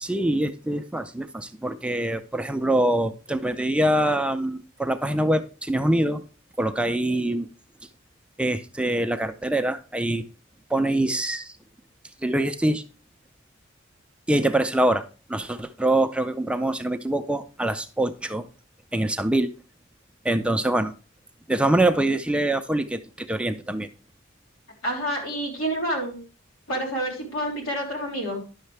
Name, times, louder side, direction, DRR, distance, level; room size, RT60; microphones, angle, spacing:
voice 1, 0.0-6.2 6.6-7.5 8.4-10.2 10.7-11.6 12.2-12.8 14.3-15.0 15.3-18.4 18.9-19.5 20.2-20.9 21.5-23.9, right 1 dB, 5° right, 9 dB, 0.4 m, -24 dB
voice 2, 24.8-26.2 26.7-28.4, right 1 dB, 85° left, -1 dB, 3.4 m, -28 dB
10.5 x 6.4 x 3.3 m, 0.34 s
head